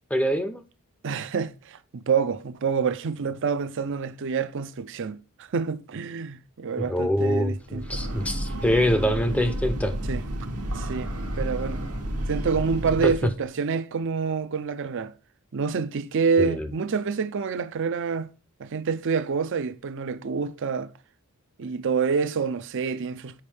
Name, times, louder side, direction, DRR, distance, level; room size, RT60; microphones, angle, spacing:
voice 1, 0.1-0.6 6.8-9.9 13.0-13.3 16.4-16.7, equal, 5° left, 0.5 m, -24 dB
voice 2, 1.0-8.0 10.1-10.2 10.7-11.8 12.3-15.1 15.5-18.3 18.6-20.9 21.6-23.4, right 5 dB, 55° right, 0.5 m, -27 dB
Breathing / Train, 7.6-13.4, equal, 85° right, 1.2 m, -31 dB
7.2 x 5.1 x 3.3 m
head